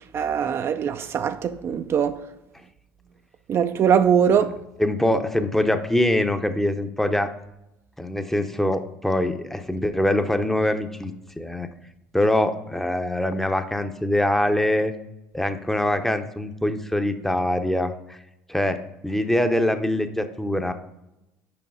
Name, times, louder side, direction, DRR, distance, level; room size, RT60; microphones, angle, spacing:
voice 1, 0.1-2.2 3.5-4.6, right 7 dB, 45° right, 0.5 m, -21 dB
voice 2, 4.8-7.3 8.0-11.7 12.1-14.9 15.3-18.2 18.5-20.7, left 1 dB, 5° left, 0.8 m, -23 dB
7.0 x 5.3 x 4.8 m
hypercardioid pair, 75°, 6 cm